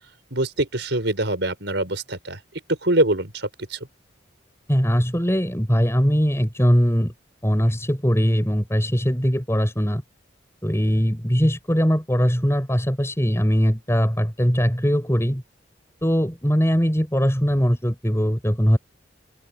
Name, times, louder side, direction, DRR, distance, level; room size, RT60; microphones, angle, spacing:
voice 1, 0.3-2.4 2.7-3.8, right 2 dB, 65° right, 5.6 m, -24 dB
voice 2, 4.7-7.1 7.4-10.0 10.6-15.4 16.0-18.8, equal, 15° left, 8.0 m, -21 dB
open air
head